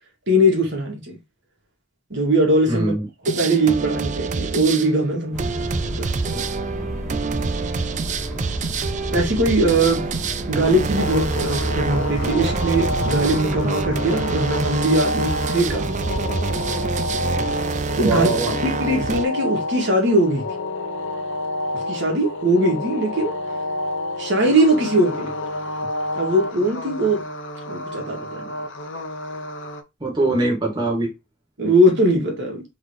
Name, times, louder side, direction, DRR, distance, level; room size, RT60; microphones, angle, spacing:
voice 1, 0.3-1.2 2.1-2.9 3.3-6.1 6.3-6.5 9.1-10.1 10.5-16.0 18.0-18.3 18.6-20.4 21.9-23.3 24.2-25.3 26.1-27.3 27.7-28.4 31.6-32.6, right 1 dB, 60° right, 1.9 m, -20 dB
voice 2, 2.7-3.1 18.0-18.6 30.0-31.1, right 2 dB, 20° right, 1.5 m, -22 dB
sound 1, 3.2-19.2, right 4 dB, 35° right, 0.4 m, -26 dB
sound 2, 5.3-13.4, equal, ahead, 1.8 m, -32 dB
sound 3, 11.0-29.8, left 2 dB, 65° left, 0.8 m, -29 dB
4.0 x 3.6 x 3.1 m
head